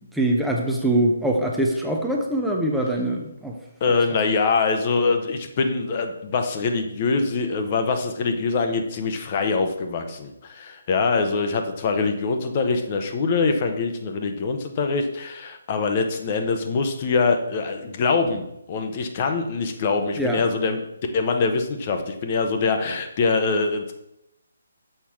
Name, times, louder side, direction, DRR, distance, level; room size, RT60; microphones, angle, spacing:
voice 1, 0.1-3.5 20.2-20.4, right 1 dB, ahead, -1 dB, 0.7 m, -23 dB
voice 2, 3.8-20.8 21.1-23.9, left 4 dB, 30° left, 5 dB, 0.8 m, -24 dB
6.6 x 5.6 x 5.9 m, 0.83 s
figure-of-eight pair, 140°, 0 cm